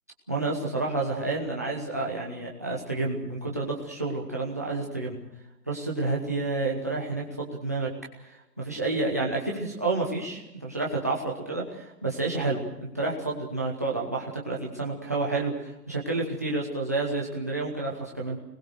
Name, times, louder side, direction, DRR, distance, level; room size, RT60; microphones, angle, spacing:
voice 1, 0.3-5.2 5.7-7.9 8.6-18.4, right 3 dB, 10° right, -3 dB, 1.0 m, -29 dB
25.5 x 20.0 x 6.4 m, 0.90 s
hypercardioid pair, 180°, 50 cm